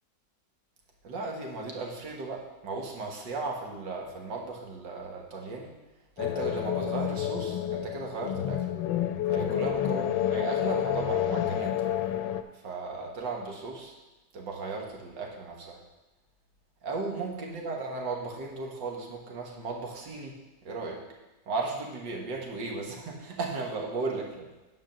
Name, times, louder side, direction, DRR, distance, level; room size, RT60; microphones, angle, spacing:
voice 1, 1.0-5.7 6.2-8.8 9.3-11.8 12.5-13.9 14.3-15.8 16.8-20.4 20.6-21.0 21.5-24.5, right 3 dB, 85° right, 0 dB, 2.1 m, -36 dB
sound 1, 6.2-12.4, left 10 dB, 85° left, 1.3 m, -29 dB
9.4 x 5.0 x 6.6 m, 1.1 s
omnidirectional pair, 1.9 m